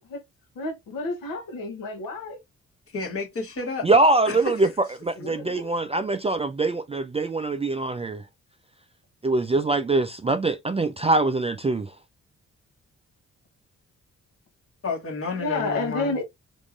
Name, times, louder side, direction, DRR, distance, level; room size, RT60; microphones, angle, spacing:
voice 1, 0.5-2.4 5.1-5.7 15.4-16.2, left 3 dB, 85° left, 1.1 m, -30 dB
voice 2, 2.9-3.9 4.3-4.5 14.8-16.1, left 3 dB, 45° left, 1.2 m, -30 dB
voice 3, 3.8-4.7 5.0-8.2 9.2-11.9, right 2 dB, 20° right, 0.4 m, -23 dB
3.5 x 3.0 x 2.5 m
supercardioid pair, 50°, 33 cm